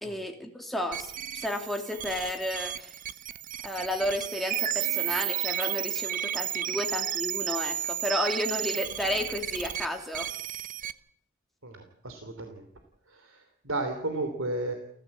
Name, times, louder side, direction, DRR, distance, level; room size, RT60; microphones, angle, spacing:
voice 1, 0.0-3.0 3.6-10.3, left 1 dB, ahead, 2 dB, 3.0 m, -32 dB
sound 1, 0.9-10.9, right 12 dB, 35° right, 0.9 m, -33 dB
voice 2, 11.6-12.6 13.1-14.7, right 2 dB, 65° right, 5 dB, 3.2 m, -34 dB
29.5 x 15.0 x 8.5 m, 0.71 s
head